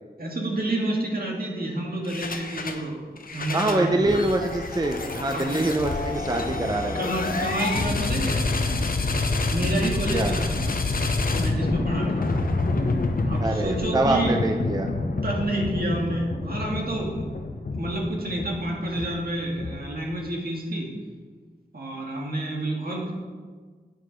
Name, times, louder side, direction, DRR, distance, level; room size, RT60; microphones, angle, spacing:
voice 1, 0.2-3.0 3.3-4.1 5.3-5.5 6.9-8.5 9.5-10.7 11.4-12.2 13.3-14.3 15.2-17.3 17.8-20.9 21.7-23.1, right 1 dB, 65° right, -1 dB, 1.7 m, -29 dB
sound 1, 2.0-2.8 3.2-20.1, left 3 dB, 55° left, 0.7 m, -28 dB
voice 2, 3.5-7.1 10.1-10.3 13.4-14.9, right 2 dB, 25° right, 4 dB, 0.5 m, -25 dB
8.9 x 4.7 x 5.1 m, 1.5 s
wide cardioid pair, 75°, 17 cm